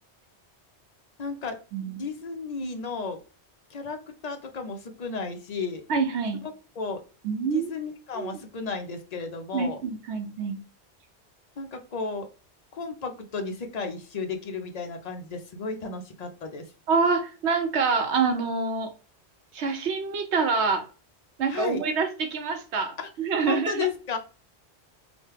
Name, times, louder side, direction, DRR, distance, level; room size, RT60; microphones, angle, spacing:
voice 1, 1.2-1.6 1.9-3.2 3.7-5.8 6.3-6.4 6.8-7.0 7.5-9.8 11.6-12.3 12.7-16.7 21.5-21.8 23.0-23.1 23.5-24.2, left 5 dB, 50° left, 5 dB, 0.6 m, -33 dB
voice 2, 1.7-2.0 5.9-6.4 7.2-7.7 8.1-8.3 9.5-10.6 16.9-18.9 19.5-20.8 21.4-23.9, right 5 dB, 80° right, 5 dB, 1.0 m, -26 dB
3.0 x 2.2 x 3.2 m, 0.36 s
omnidirectional pair, 1.1 m